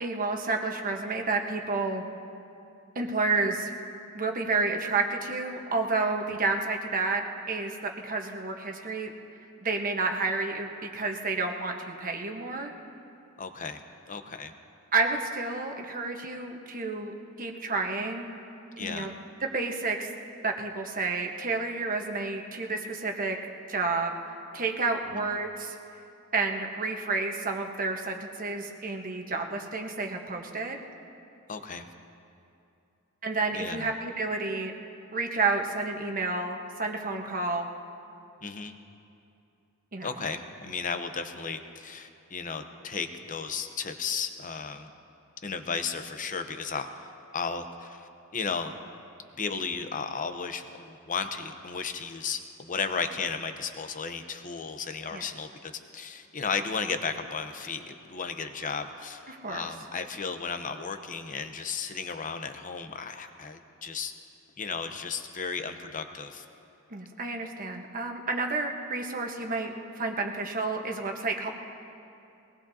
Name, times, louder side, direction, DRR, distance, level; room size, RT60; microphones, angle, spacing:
voice 1, 0.0-2.0 2.9-3.7 4.1-7.8 8.0-9.1 9.6-12.7 14.9-18.3 18.8-19.1 19.4-20.1 20.4-23.4 23.7-24.1 24.5-25.7 26.3-30.8 33.2-34.7 35.1-37.7 39.9-40.1 55.1-55.3 59.3-59.7 66.9-71.5, right 3 dB, 40° right, 3 dB, 1.2 m, -30 dB
voice 2, 13.4-13.8 14.1-14.5 18.8-19.1 25.1-25.3 31.5-31.9 33.5-33.9 38.4-38.7 40.0-44.9 45.4-48.8 49.4-64.1 64.6-66.4, left 5 dB, 35° left, 8 dB, 0.8 m, -34 dB
22.5 x 18.5 x 2.8 m, 2.7 s
head